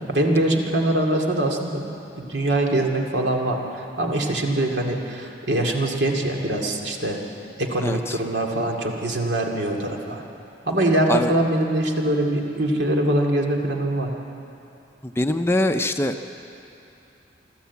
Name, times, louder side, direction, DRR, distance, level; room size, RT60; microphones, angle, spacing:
voice 1, 0.1-1.8 2.2-7.2 7.6-10.2 10.7-14.1, right 1 dB, 75° right, 1 dB, 2.4 m, -23 dB
voice 2, 7.8-8.2 11.1-11.3 15.0-16.2, left 1 dB, 15° left, 6 dB, 0.6 m, -23 dB
25.5 x 13.0 x 8.3 m, 2.9 s
head